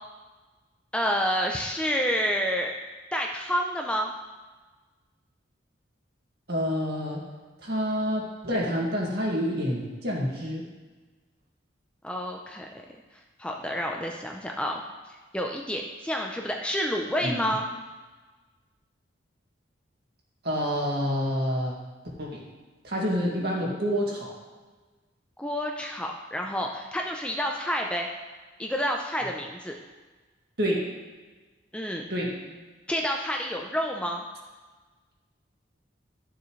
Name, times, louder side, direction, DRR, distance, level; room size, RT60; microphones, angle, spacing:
voice 1, 0.9-2.7 3.1-4.1 12.0-12.7 13.4-14.8 15.3-17.7 25.4-28.1 28.6-29.8 31.7-32.1 32.9-34.2, equal, 5° left, 1 dB, 0.6 m, -29 dB
voice 2, 6.5-7.3 7.6-10.7 17.2-17.5 20.4-21.7 22.2-22.4 22.8-24.3 30.6-30.9 32.1-32.4, equal, 55° right, -3 dB, 2.2 m, -28 dB
13.0 x 6.8 x 3.2 m, 1.3 s
head